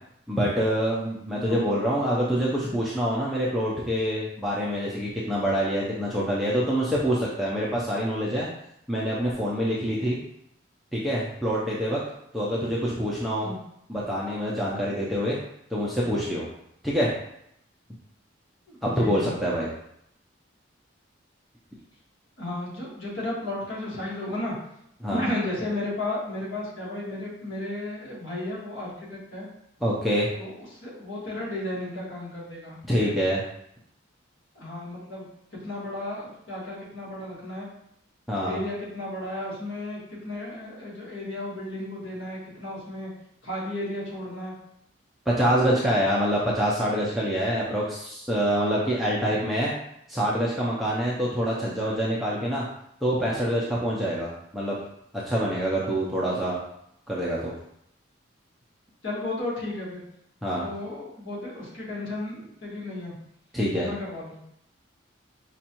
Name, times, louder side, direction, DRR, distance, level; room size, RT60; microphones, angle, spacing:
voice 1, 0.3-8.5 8.9-10.2 10.9-12.0 12.3-13.5 13.9-15.4 15.7-16.5 16.8-17.1 18.8-19.7 25.0-25.2 29.8-30.3 32.9-33.4 38.3-38.6 45.3-49.7 50.1-52.7 53.0-54.8 55.3-56.6 57.1-57.5 60.4-60.7 63.5-63.9, equal, ahead, -7 dB, 0.4 m, -26 dB
voice 2, 1.3-1.8 13.4-13.6 18.7-19.3 22.4-24.5 25.1-29.5 30.4-33.1 34.5-35.2 35.6-37.7 38.4-43.1 43.4-44.5 59.0-60.0 60.5-63.1 63.7-64.4, left 1 dB, 85° left, -6 dB, 1.5 m, -34 dB
5.2 x 2.3 x 2.9 m, 0.76 s
head